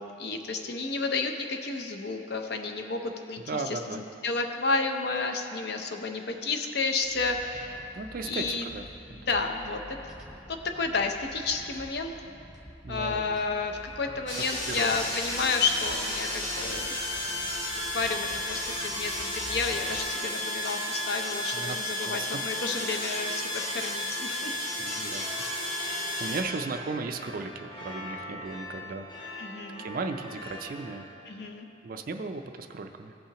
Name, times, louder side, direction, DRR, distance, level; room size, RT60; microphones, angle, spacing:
voice 1, 0.0-7.8 8.2-8.7 9.1-9.8 10.5-12.1 12.9-17.0 17.9-24.6 25.8-26.2 29.4-29.8 31.3-31.7, left 4 dB, 55° left, 5 dB, 0.6 m, -31 dB
voice 2, 3.5-4.0 8.0-8.9 9.2-9.3 12.8-13.4 14.7-14.9 21.5-21.8 22.0-22.4 24.8-25.3 26.2-31.1 31.8-33.1, right 3 dB, 45° right, 6 dB, 0.4 m, -36 dB
sound 1, 7.0-20.1, equal, 5° right, 0.8 m, -48 dB
sound 2, 13.2-31.0, left 1 dB, 25° left, 0.9 m, -45 dB
sound 3, 14.3-26.4, left 1 dB, 80° left, 1.9 m, -33 dB
16.0 x 5.6 x 2.9 m, 2.8 s
head